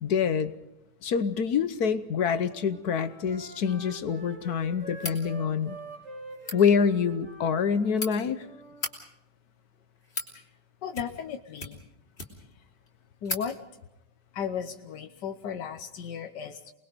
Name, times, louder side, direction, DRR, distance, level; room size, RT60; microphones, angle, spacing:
voice 1, 0.0-0.5 1.0-5.8 6.5-8.4, left 6 dB, 65° left, 12 dB, 1.5 m, -26 dB
Wind instrument woodwind instrument, 2.5-8.8, right 1 dB, 50° right, 5.8 m, -45 dB
sound 1, 5.0-5.2 6.3-6.6 7.6-8.1 8.7-8.9 9.7-10.3 10.9-11.3 11.6-12.5 12.9-13.0 13.2-13.5, left 3 dB, 35° left, 3.6 m, -36 dB
voice 2, 10.8-11.8 13.2-13.6 14.3-16.7, left 7 dB, 90° left, 5 dB, 1.7 m, -35 dB
28.5 x 21.0 x 5.2 m, 0.88 s
omnidirectional pair, 1.8 m